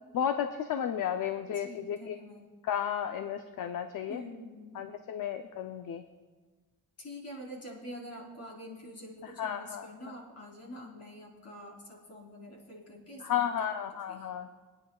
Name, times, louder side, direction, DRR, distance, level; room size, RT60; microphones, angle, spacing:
voice 1, 0.1-2.2 2.6-4.2 4.8-6.0 9.4-9.9 13.2-14.5, left 9 dB, 65° left, 7 dB, 0.6 m, -33 dB
voice 2, 1.4-2.4 4.1-4.8 7.0-13.8 14.1-14.3, left 1 dB, 45° left, -2 dB, 3.6 m, -46 dB
22.0 x 9.8 x 2.3 m, 1.4 s
wide cardioid pair, 145°, 36 cm